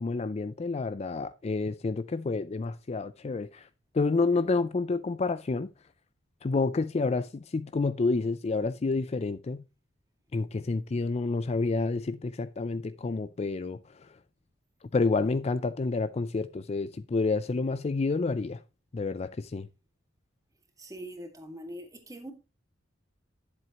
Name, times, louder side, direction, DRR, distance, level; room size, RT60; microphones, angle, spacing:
voice 1, 0.0-3.7 3.9-5.7 6.4-9.6 10.3-13.8 14.9-18.6 18.9-19.7, left 3 dB, 35° left, 0.4 m, -29 dB
voice 2, 20.8-22.3, right 1 dB, 20° right, 1.9 m, -42 dB
11.0 x 7.6 x 2.9 m
head